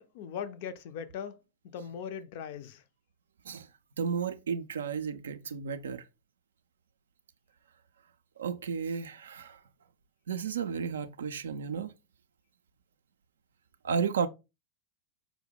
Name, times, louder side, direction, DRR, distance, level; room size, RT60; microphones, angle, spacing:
voice 1, 0.0-1.4 1.6-2.8, left 7 dB, 50° left, 0.4 m, -39 dB
voice 2, 4.0-6.0 8.4-9.6 10.3-11.9 13.8-14.3, right 6 dB, 65° right, 0.4 m, -33 dB
4.7 x 2.0 x 3.4 m
figure-of-eight pair, 90°, 0 cm